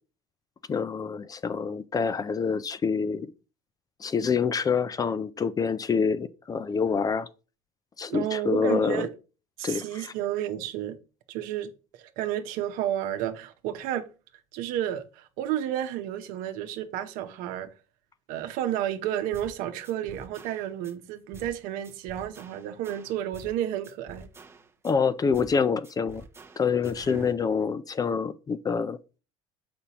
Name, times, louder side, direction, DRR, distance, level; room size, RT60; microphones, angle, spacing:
voice 1, 0.7-3.3 4.0-7.3 8.0-9.1 9.6-10.1 24.8-26.2 26.6-29.0, left 5 dB, 25° left, 0.4 m, -26 dB
voice 2, 8.1-9.1 9.6-11.0 11.3-11.7 12.0-14.1 14.5-17.7 18.3-24.3, right 11 dB, 70° right, 0.9 m, -31 dB
sound 1, 19.3-19.6 19.8-20.9 21.3-21.6 21.8-23.6 23.8-24.9 25.3-25.6 25.8-27.3, right 3 dB, 15° right, 0.7 m, -48 dB
6.8 x 5.2 x 2.9 m
supercardioid pair, 90°, 15 cm